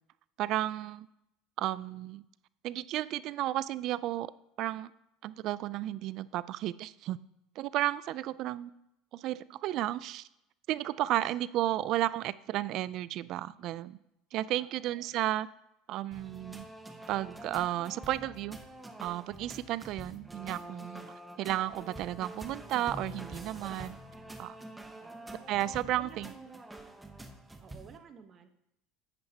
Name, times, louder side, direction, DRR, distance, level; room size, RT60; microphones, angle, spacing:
voice 1, 0.4-1.1 1.6-2.2 2.6-4.3 4.6-4.9 5.2-7.2 7.6-8.7 9.1-10.3 10.7-14.0 14.3-15.5 15.9-16.6 17.1-18.6 19.0-21.1 21.4-24.0 24.4-24.6 25.5-26.3, right 14 dB, 55° right, 19 dB, 0.4 m, -33 dB
voice 2, 14.5-15.1 25.0-25.6 26.0-26.6 27.6-28.5, right 6 dB, 40° right, 8 dB, 1.1 m, -53 dB
sound 1, 16.1-28.0, right 1 dB, 10° right, 0.9 m, -46 dB
10.5 x 8.6 x 2.9 m, 0.83 s
supercardioid pair, 105°, 0 cm